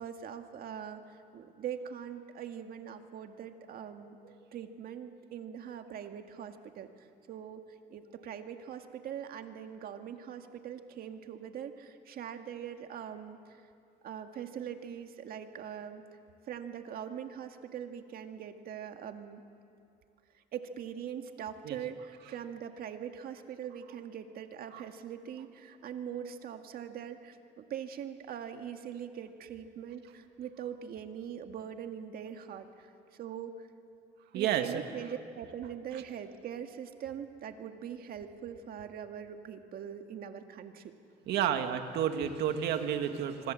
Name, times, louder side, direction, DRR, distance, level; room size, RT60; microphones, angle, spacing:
voice 1, 0.0-4.2 4.5-13.4 14.0-16.0 16.5-19.4 20.5-32.9 33.1-33.7 34.3-40.9, right 8 dB, 60° right, 6 dB, 1.9 m, -42 dB
voice 2, 34.3-34.8 35.9-36.0 41.3-43.5, right 9 dB, 75° right, 6 dB, 1.9 m, -31 dB
26.0 x 24.5 x 7.7 m, 2.5 s
cardioid pair, 110°, 17 cm